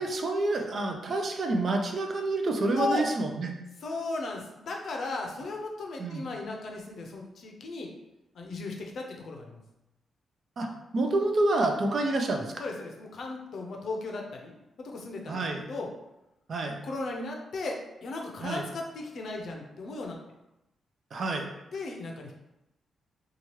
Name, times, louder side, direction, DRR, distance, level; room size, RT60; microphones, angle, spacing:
voice 1, 0.0-3.5 6.0-6.2 10.6-10.7 10.9-12.6 15.3-15.6 16.5-16.8 18.4-18.7 21.1-21.5, right 2 dB, 55° right, 3 dB, 0.5 m, -28 dB
voice 2, 3.8-7.9 8.3-9.6 12.6-15.9 16.8-20.2 21.7-22.3, left 3 dB, 65° left, 1 dB, 0.6 m, -36 dB
2.9 x 2.3 x 3.0 m, 0.91 s
cardioid pair, 80°, 0 cm